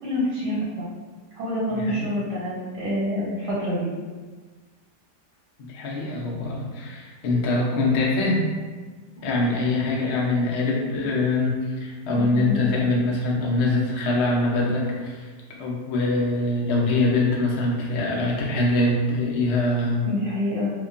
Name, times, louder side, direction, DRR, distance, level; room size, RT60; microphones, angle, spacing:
voice 1, 0.0-0.9 1.3-3.9 12.1-12.8 20.0-20.7, left 1 dB, 80° right, -7 dB, 1.4 m, -27 dB
voice 2, 1.7-2.1 5.6-8.5 9.2-15.3 15.6-20.1, left 2 dB, 90° left, -3 dB, 0.5 m, -23 dB
2.8 x 2.2 x 2.4 m, 1.4 s
omnidirectional pair, 1.8 m